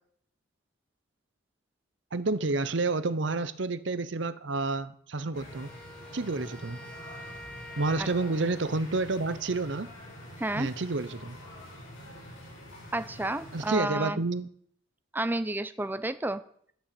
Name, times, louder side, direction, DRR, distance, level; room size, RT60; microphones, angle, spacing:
voice 1, 2.1-5.7 6.1-6.8 7.8-9.9 10.5-11.4 13.5-14.5, right 3 dB, 60° right, 14 dB, 0.8 m, -29 dB
sound 1, 5.3-13.9, left 1 dB, 85° left, 6.6 m, -46 dB
Wind instrument woodwind instrument, 5.5-8.8, left 1 dB, 5° left, 1.9 m, -47 dB
voice 2, 10.4-10.7 12.9-14.2 15.1-16.4, right 1 dB, 10° right, 12 dB, 0.5 m, -31 dB
11.5 x 6.9 x 7.7 m, 0.64 s
head